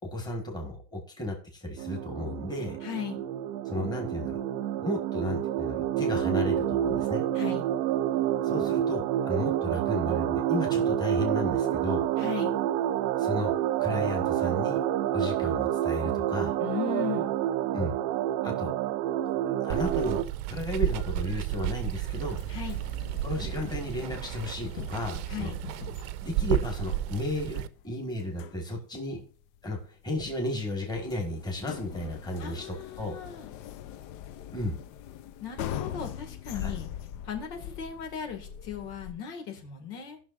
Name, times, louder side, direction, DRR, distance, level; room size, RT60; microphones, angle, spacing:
voice 1, 0.1-2.8 3.6-4.4 4.8-7.2 8.4-12.1 13.2-13.5 13.8-14.8 15.1-16.6 17.7-18.0 18.4-18.7 19.4-20.2 20.5-22.4 23.2-25.5 26.2-29.2 29.6-33.2 34.5-34.8 36.6-36.7, left 1 dB, 10° left, 1 dB, 1.6 m, -33 dB
sound 1, 1.8-20.2, right 11 dB, 40° right, 0.5 m, -28 dB
voice 2, 2.8-3.2 7.3-7.7 12.2-12.6 16.6-17.3 22.5-22.8 25.3-25.6 32.4-33.5 35.4-36.9 37.2-40.2, left 8 dB, 80° left, 4 dB, 2.1 m, -37 dB
Water, 19.7-27.7, right 13 dB, 75° right, 0.7 m, -33 dB
sound 2, 22.1-39.1, left 10 dB, 45° left, 0.5 m, -42 dB
18.0 x 6.1 x 2.5 m, 0.40 s
cardioid pair, 155°, 46 cm